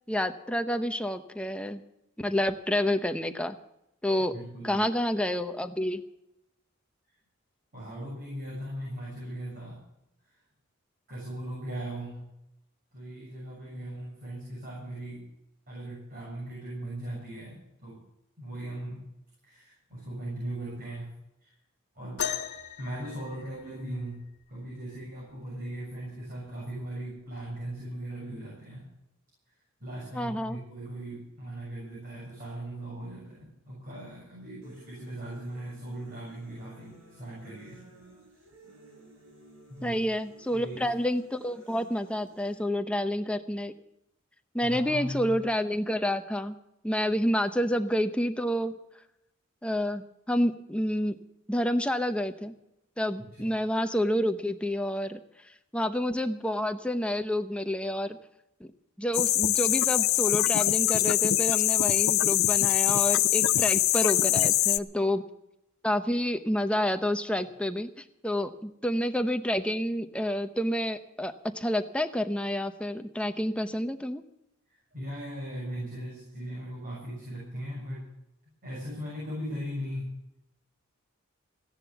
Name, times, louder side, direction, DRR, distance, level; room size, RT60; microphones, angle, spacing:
voice 1, 0.1-1.8 2.2-3.6 4.0-4.3 4.6-6.0 30.1-30.6 39.8-43.7 44.5-46.5 46.8-48.7 49.6-51.2 51.5-52.5 53.0-55.2 55.7-58.2 58.6-58.7 59.0-65.2 65.8-74.2, left 1 dB, 5° left, 8 dB, 0.8 m, -29 dB
voice 2, 4.3-4.9 7.7-9.8 10.2-10.4 11.1-12.3 12.9-15.3 15.7-18.0 18.4-19.0 19.4-21.1 21.4-21.5 21.9-22.3 22.8-29.0 29.8-37.9 39.7-40.0 40.5-40.9 44.6-45.3 53.3-53.5 74.7-78.1 78.6-80.1, right 1 dB, 45° right, -4 dB, 7.0 m, -39 dB
sound 1, 22.2-24.1 25.7-25.8 26.6-26.9 27.8-27.9, left 8 dB, 55° left, 1.9 m, -36 dB
sound 2, 34.6-42.6, right 2 dB, 80° right, 5.6 m, -54 dB
sound 3, 59.1-64.8, left 14 dB, 70° left, 0.6 m, -23 dB
16.0 x 10.5 x 7.0 m, 0.85 s
head